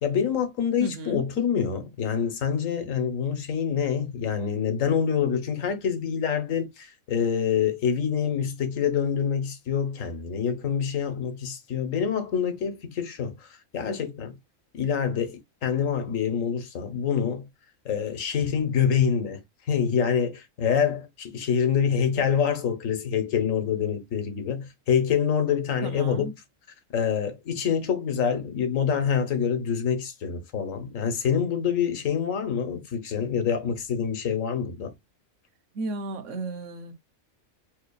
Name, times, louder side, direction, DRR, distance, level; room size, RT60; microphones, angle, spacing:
voice 1, 0.0-14.4 14.7-17.5 17.8-26.3 26.9-35.0, left 7 dB, 70° left, 1.3 m, -26 dB
voice 2, 0.8-1.2 25.8-26.3 35.7-36.9, right 2 dB, 65° right, 1.2 m, -34 dB
4.6 x 2.8 x 2.3 m
omnidirectional pair, 1.5 m